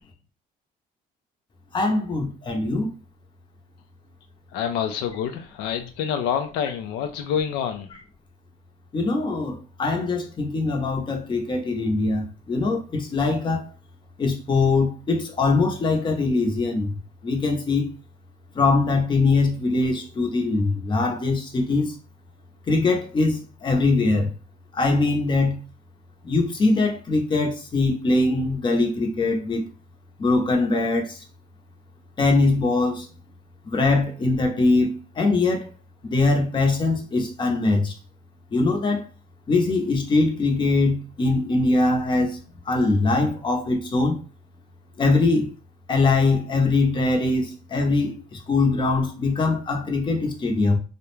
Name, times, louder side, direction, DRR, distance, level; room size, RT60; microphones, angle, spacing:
voice 1, 1.7-2.9 8.9-13.6 14.2-16.9 17.2-17.9 18.5-21.9 22.7-24.3 24.7-25.6 26.2-29.6 30.2-31.2 32.2-33.1 33.7-34.9 35.2-35.7 36.0-37.9 38.5-39.0 39.5-42.4 42.7-44.2 45.0-45.5 45.9-50.8, left 3 dB, 30° left, 0.7 m, -22 dB
voice 2, 4.5-7.9, left 8 dB, 90° left, 0.4 m, -27 dB
2.3 x 2.1 x 3.0 m
cardioid pair, 110°, 17 cm